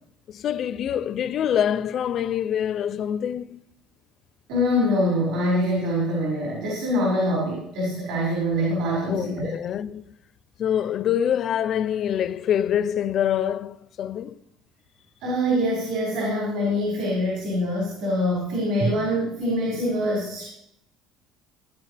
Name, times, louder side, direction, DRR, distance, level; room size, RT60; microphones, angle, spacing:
voice 1, 0.3-3.6 9.1-10.0 10.6-14.4, left 9 dB, 35° left, 0.4 m, -25 dB
voice 2, 4.5-9.5 15.2-20.4, equal, 70° right, 5.5 m, -24 dB
16.5 x 11.5 x 3.4 m
cardioid pair, 175°, 0 cm